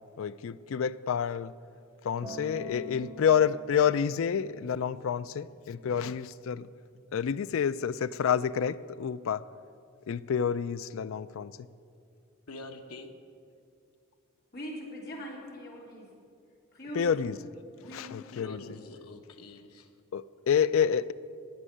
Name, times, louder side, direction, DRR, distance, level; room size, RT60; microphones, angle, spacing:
voice 1, 0.2-1.5 2.0-6.7 7.1-9.4 10.1-11.6 16.9-17.4 17.9-18.6 20.1-21.1, left 7 dB, 65° left, 16 dB, 0.4 m, -28 dB
Acoustic guitar, 2.2-6.5 7.3-7.4, left 1 dB, 15° right, 2.1 m, -47 dB
voice 2, 12.5-13.1 18.3-19.9, left 3 dB, 85° left, 5 dB, 1.3 m, -45 dB
voice 3, 14.5-16.1 16.7-17.4 17.8-18.2, equal, 45° left, -3 dB, 3.5 m, -42 dB
17.5 x 6.3 x 9.8 m, 2.4 s
head